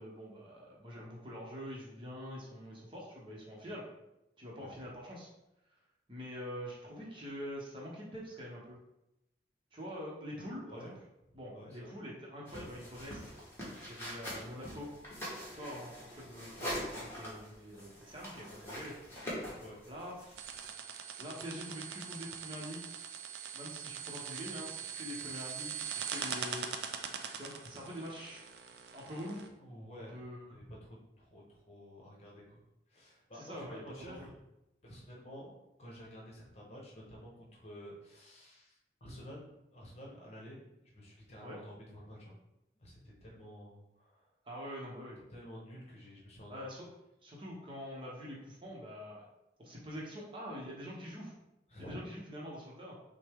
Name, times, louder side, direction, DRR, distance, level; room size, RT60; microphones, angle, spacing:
voice 1, 0.0-3.8 4.4-5.3 6.1-8.8 9.7-10.9 11.3-13.2 13.9-14.9 15.5-18.9 19.9-20.4 21.2-22.9 23.5-26.7 27.3-28.4 28.9-29.4 30.1-30.6 33.3-34.3 41.4-41.6 44.4-45.2 46.5-46.9 47.2-49.3 49.6-51.3 51.8-52.9, equal, 30° right, -4 dB, 0.9 m, -45 dB
voice 2, 11.5-12.0 19.6-19.7 27.2-27.4 29.6-30.2 30.5-32.6 32.9-34.4 34.8-42.3 42.7-44.3 45.3-46.6 51.7-52.0, equal, 35° left, -3 dB, 1.0 m, -51 dB
sound 1, 12.5-20.7, equal, 15° left, 1.3 m, -44 dB
sound 2, 20.4-29.5, right 7 dB, 65° right, 0.4 m, -42 dB
6.0 x 2.2 x 3.6 m, 0.90 s
head